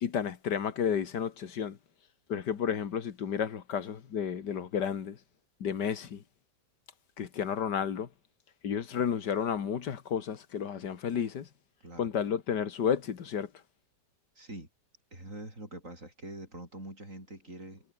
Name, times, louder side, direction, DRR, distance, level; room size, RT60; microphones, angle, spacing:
voice 1, 0.0-1.8 2.3-5.2 5.6-6.2 7.2-8.1 8.6-11.5 12.0-13.5, left 7 dB, 80° left, 2.2 m, -32 dB
voice 2, 14.4-14.7 15.1-17.8, right 1 dB, 45° right, 8.6 m, -44 dB
omnidirectional pair, 1.8 m